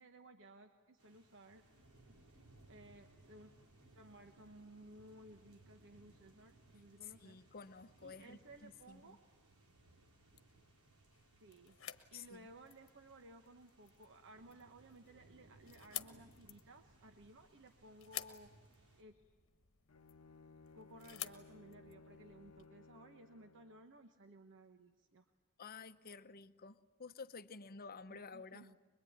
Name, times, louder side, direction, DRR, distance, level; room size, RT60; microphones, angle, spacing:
voice 1, 0.0-1.6 2.3-3.5 3.9-7.4 8.0-9.2 11.4-11.8 12.1-18.5 19.0-19.2 20.7-25.3 28.1-28.8, right 1 dB, 60° right, 6 dB, 1.2 m, -58 dB
sound 1, 1.0-19.0, right 2 dB, 80° right, 4.4 m, -66 dB
voice 2, 7.0-9.2 12.1-12.5 25.6-28.7, left 5 dB, 45° left, 11 dB, 0.9 m, -52 dB
sound 2, 9.8-22.7, left 12 dB, 65° left, 1.2 m, -53 dB
Bowed string instrument, 19.9-23.9, left 3 dB, 80° left, 1.0 m, -60 dB
23.5 x 22.5 x 9.5 m, 1.4 s
head